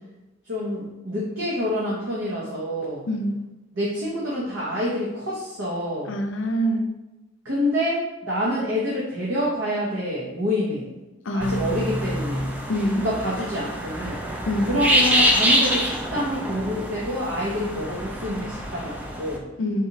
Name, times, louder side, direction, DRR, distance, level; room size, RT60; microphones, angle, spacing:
voice 1, 0.5-3.0 3.7-6.2 7.4-10.9 11.3-12.4 12.9-14.2 14.7-19.4, equal, 65° right, -6 dB, 0.8 m, -27 dB
voice 2, 3.1-3.4 6.1-6.9 11.3-11.9 12.7-13.1 14.5-14.8 19.6-19.9, equal, 75° left, 6 dB, 0.5 m, -25 dB
sound 1, 11.4-19.4, equal, 10° right, 0.4 m, -25 dB
3.9 x 2.9 x 2.7 m, 1.0 s
head